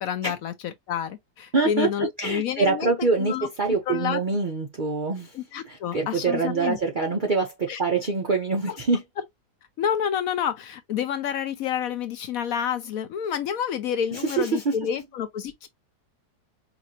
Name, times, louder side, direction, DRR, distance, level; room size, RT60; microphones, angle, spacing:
voice 1, 0.0-2.9 3.2-3.5 3.9-4.2 5.3-6.8 7.7-7.8 8.7-8.8 9.8-15.7, left 9 dB, 70° left, 0.9 m, -29 dB
voice 2, 1.5-1.9 2.2-5.3 5.7-9.0 14.1-14.8, right 4 dB, 55° right, 0.5 m, -25 dB
4.9 x 2.5 x 2.7 m
omnidirectional pair, 1.8 m